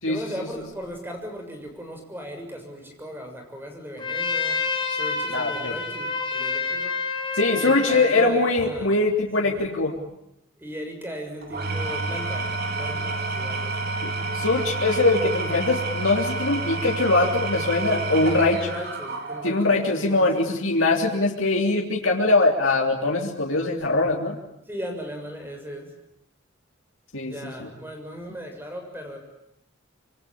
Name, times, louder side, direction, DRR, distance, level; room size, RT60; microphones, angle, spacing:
voice 1, 0.0-7.0 7.5-8.9 9.4-9.7 10.6-14.1 17.9-20.5 24.7-26.0 27.2-29.2, equal, 10° right, 4 dB, 6.7 m, -37 dB
Trumpet, 4.0-8.3, left 4 dB, 25° left, 4.8 m, -28 dB
voice 2, 5.3-5.8 7.3-9.9 14.0-18.7 19.4-24.3 27.1-27.3 27.6-27.7, left 2 dB, 85° left, 0 dB, 3.4 m, -22 dB
Engine / Tools, 11.4-19.7, right 3 dB, 50° right, 4.5 m, -29 dB
27.0 x 25.0 x 8.7 m, 0.82 s
head